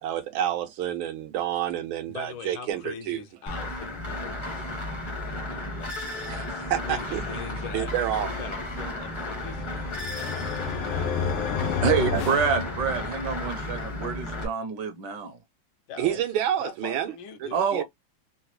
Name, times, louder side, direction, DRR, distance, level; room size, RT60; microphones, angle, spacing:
voice 1, 0.0-3.2 6.3-7.3 7.7-8.3 12.0-12.2 16.0-17.1 17.4-17.8, right 11 dB, 90° right, 1.5 m, -29 dB
voice 2, 2.1-11.1 15.9-16.2 16.6-17.7, left 6 dB, 75° left, 1.3 m, -42 dB
sound 1, 3.5-14.4, left 1 dB, 30° left, 0.5 m, -34 dB
sound 2, 9.0-13.4, left 6 dB, 90° left, 1.6 m, -31 dB
voice 3, 11.8-15.4 17.5-17.8, right 6 dB, 70° right, 1.1 m, -27 dB
3.9 x 2.2 x 2.9 m
omnidirectional pair, 2.2 m